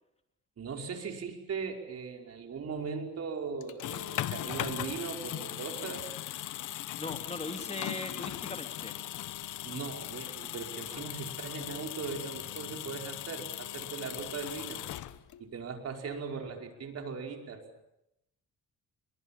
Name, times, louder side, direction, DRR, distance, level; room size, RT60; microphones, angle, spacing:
voice 1, 0.6-6.1 9.7-14.9 15.4-17.6, right 5 dB, 55° right, 3 dB, 5.3 m, -39 dB
sound 1, 3.6-15.5, left 13 dB, 80° left, 1.1 m, -39 dB
voice 2, 6.8-8.9, left 2 dB, 20° left, 5 dB, 3.5 m, -39 dB
29.0 x 22.5 x 7.5 m, 0.84 s
cardioid pair, 90°, 30 cm